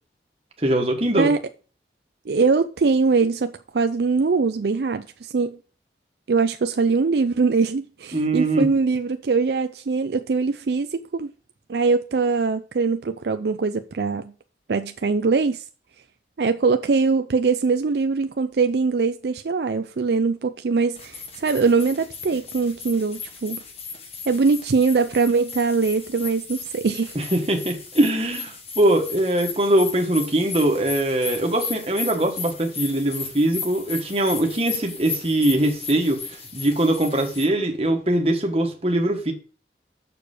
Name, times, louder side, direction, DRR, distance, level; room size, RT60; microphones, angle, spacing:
voice 1, 0.6-1.3 8.1-8.7 27.1-39.3, right 1 dB, 35° right, 1.5 m, -22 dB
voice 2, 2.3-5.6 6.3-11.3 11.7-14.3 14.7-15.6 16.4-23.6 24.3-27.1, right 4 dB, 70° right, 0.5 m, -22 dB
sound 1, 20.9-37.5, left 5 dB, 35° left, 1.3 m, -36 dB
6.8 x 6.7 x 5.0 m
head